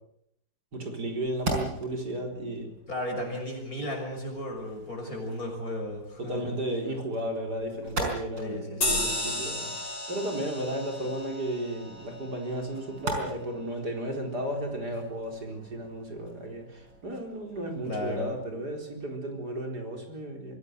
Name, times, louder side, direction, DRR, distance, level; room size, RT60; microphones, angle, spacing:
voice 1, 0.7-2.7 6.2-20.6, right 1 dB, 60° right, 3 dB, 4.7 m, -34 dB
sound 1, 1.0-18.5, right 2 dB, 80° right, 5.8 m, -41 dB
voice 2, 2.9-6.5 8.4-9.0 17.9-18.3, left 1 dB, 50° left, 2 dB, 6.8 m, -34 dB
sound 2, 8.8-13.7, left 1 dB, 75° left, 7.4 m, -34 dB
24.5 x 17.0 x 8.0 m, 0.73 s
omnidirectional pair, 2.0 m